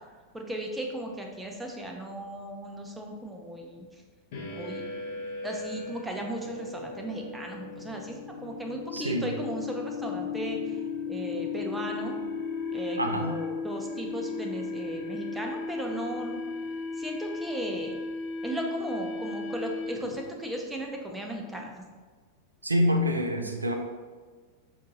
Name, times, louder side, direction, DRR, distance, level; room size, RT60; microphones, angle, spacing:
voice 1, 0.3-4.0 4.4-4.8 5.4-10.8 11.1-12.2 12.7-16.4 17.0-18.0 18.4-21.9, right 1 dB, 5° right, 1 dB, 0.6 m, -36 dB
sound 1, 4.3-20.2, left 4 dB, 55° left, 0.8 m, -36 dB
voice 2, 8.9-9.3 13.0-13.3 22.6-23.7, equal, 80° right, 4 dB, 0.4 m, -26 dB
5.3 x 2.5 x 2.7 m, 1.5 s
figure-of-eight pair, 90°, 0 cm